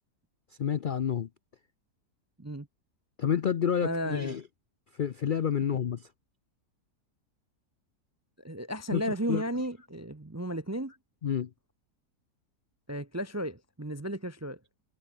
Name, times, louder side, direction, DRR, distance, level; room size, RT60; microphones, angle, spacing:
voice 1, 0.6-1.3 3.2-4.4 5.0-6.1 8.9-9.4 11.2-11.5, left 8 dB, 75° left, 0.4 m, -29 dB
voice 2, 3.8-4.4 5.7-5.8 8.4-10.9 12.9-14.6, equal, 20° right, 0.4 m, -34 dB
omnidirectional pair, 1.7 m